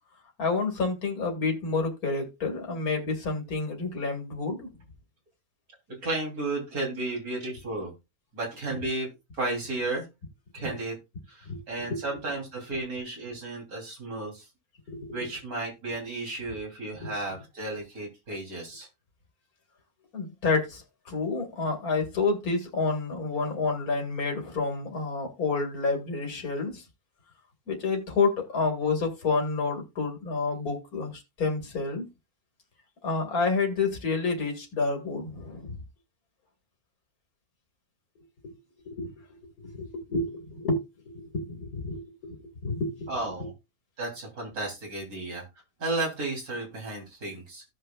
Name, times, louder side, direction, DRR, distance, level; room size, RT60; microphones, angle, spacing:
voice 1, 0.4-4.7 10.6-10.7 11.5-11.6 11.9-12.0 14.9-15.3 17.0-17.1 20.1-26.9 27.7-32.1 33.0-35.7 38.4-38.6 38.9-43.1, left 4 dB, 85° left, 2.5 m, -29 dB
voice 2, 6.0-7.9 8.3-9.1 9.3-10.1 10.5-11.0 11.3-14.5 15.1-18.9 43.1-43.5 44.0-45.4 45.8-47.6, right 2 dB, 85° right, 3.7 m, -33 dB
16.5 x 5.7 x 2.3 m
omnidirectional pair, 1.5 m